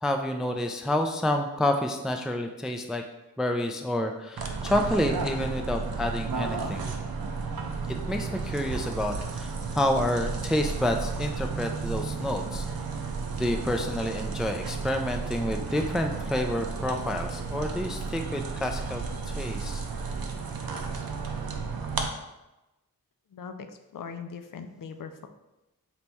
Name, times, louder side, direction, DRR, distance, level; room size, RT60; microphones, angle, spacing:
voice 1, 0.0-3.0 3.4-6.9 7.9-12.6 13.4-19.8, left 1 dB, ahead, 4 dB, 0.3 m, -29 dB
sound 1, 4.4-22.1, right 4 dB, 80° right, 0.6 m, -33 dB
voice 2, 23.3-23.7 23.9-25.3, left 6 dB, 65° left, 8 dB, 0.5 m, -40 dB
4.1 x 2.9 x 3.4 m, 0.99 s
wide cardioid pair, 55°, 35 cm